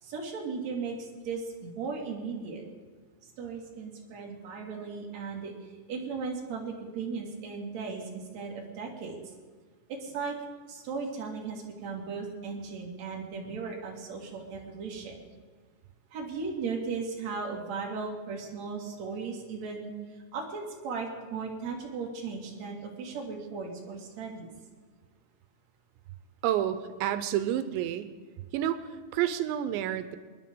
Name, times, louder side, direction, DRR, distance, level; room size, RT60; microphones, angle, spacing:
voice 1, 0.0-2.6 3.4-5.5 5.9-9.2 9.9-10.3 10.7-15.2 16.1-24.5, right 4 dB, 45° right, -1 dB, 2.9 m, -37 dB
voice 2, 26.4-28.1 28.5-30.2, right 11 dB, 90° right, 11 dB, 3.0 m, -29 dB
27.0 x 10.5 x 3.8 m, 1.5 s
omnidirectional pair, 5.2 m